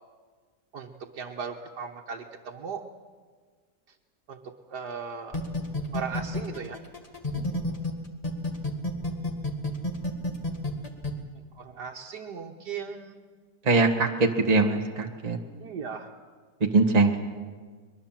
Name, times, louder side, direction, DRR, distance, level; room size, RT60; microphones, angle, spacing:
voice 1, 0.7-2.8 4.3-5.4 5.9-6.8 11.5-13.2 15.6-16.1, right 6 dB, 90° right, -1 dB, 1.8 m, -37 dB
sound 1, 5.3-7.9 8.2-11.1, left 2 dB, 20° left, 2.0 m, -29 dB
voice 2, 13.6-15.4 16.6-17.2, right 3 dB, 25° right, 3 dB, 1.5 m, -22 dB
22.5 x 22.0 x 7.5 m, 1.5 s
omnidirectional pair, 1.7 m